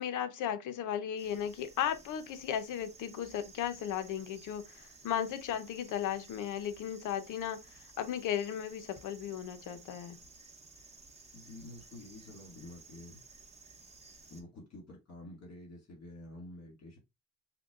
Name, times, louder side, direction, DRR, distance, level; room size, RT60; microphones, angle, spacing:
voice 1, 0.0-7.6 8.0-10.2, left 9 dB, 85° left, 0.7 m, -35 dB
sound 1, 1.2-14.4, right 3 dB, 20° right, 0.8 m, -56 dB
voice 2, 11.3-13.2 14.3-17.0, left 1 dB, 60° left, 2.1 m, -49 dB
5.9 x 2.2 x 2.4 m
cardioid pair, 90°, 30 cm